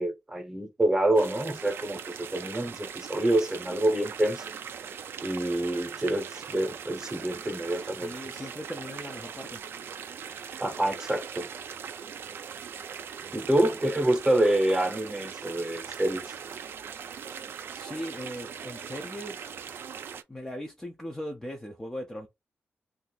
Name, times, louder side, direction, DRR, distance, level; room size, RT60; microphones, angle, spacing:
voice 1, 0.0-4.5 5.2-8.1 10.6-11.5 13.3-16.2, right 1 dB, 15° right, 0.9 m, -27 dB
sound 1, 1.2-20.2, right 7 dB, 65° right, 0.4 m, -40 dB
voice 2, 7.6-9.6 13.2-13.5 17.7-19.5 20.3-22.3, equal, 10° left, 0.5 m, -39 dB
2.6 x 2.4 x 3.9 m
wide cardioid pair, 175°, 4 cm